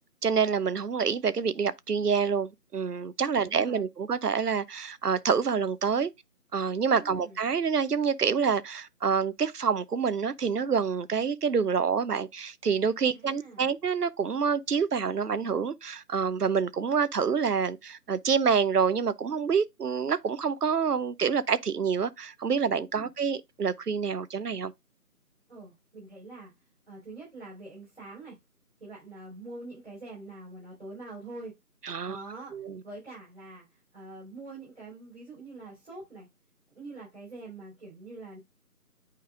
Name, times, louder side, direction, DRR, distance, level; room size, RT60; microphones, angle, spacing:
voice 1, 0.2-6.1 6.5-24.7 31.8-32.2 32.5-32.8, right 6 dB, 75° right, 0.8 m, -27 dB
voice 2, 3.3-3.8 7.0-7.4 13.1-13.7 22.9-23.1 25.5-26.5 26.9-28.4 28.8-31.5 32.0-36.3 36.7-38.4, right 2 dB, 40° right, 4.6 m, -45 dB
8.6 x 5.1 x 2.4 m
figure-of-eight pair, 175°, 47 cm